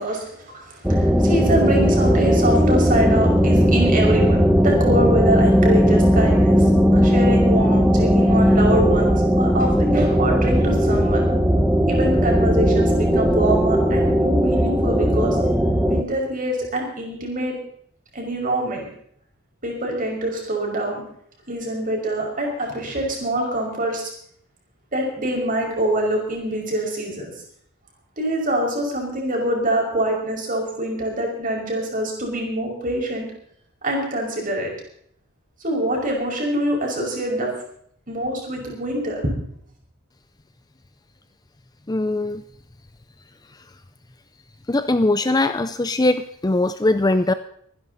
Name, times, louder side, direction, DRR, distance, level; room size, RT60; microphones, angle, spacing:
voice 1, 0.0-11.2 11.9-15.4 15.9-17.6 18.1-18.9 19.6-21.0 21.5-24.1 24.9-27.3 28.2-33.3 33.8-34.7 35.6-37.5 38.1-39.4, right 1 dB, 40° right, 0 dB, 5.5 m, -25 dB
sound 1, 0.8-16.0, equal, 5° right, 1.1 m, -17 dB
voice 2, 41.9-42.4 44.7-47.3, left 2 dB, 20° left, 11 dB, 0.5 m, -20 dB
25.0 x 10.5 x 4.1 m, 0.66 s
head